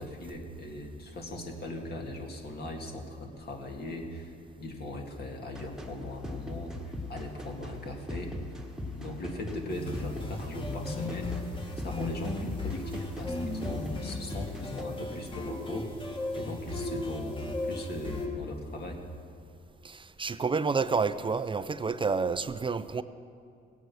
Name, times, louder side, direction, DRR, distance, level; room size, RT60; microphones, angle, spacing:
voice 1, 0.0-8.3 8.9-11.3 11.8-15.9 16.3-19.0, left 1 dB, 55° left, 2 dB, 2.1 m, -39 dB
sound 1, 5.5-14.8, left 2 dB, 5° right, 1.4 m, -40 dB
sound 2, 9.7-18.3, left 2 dB, 25° left, 1.9 m, -36 dB
voice 2, 19.8-23.0, right 4 dB, 25° right, 13 dB, 0.5 m, -29 dB
17.5 x 8.3 x 6.2 m, 2.4 s
cardioid pair, 90°, 20 cm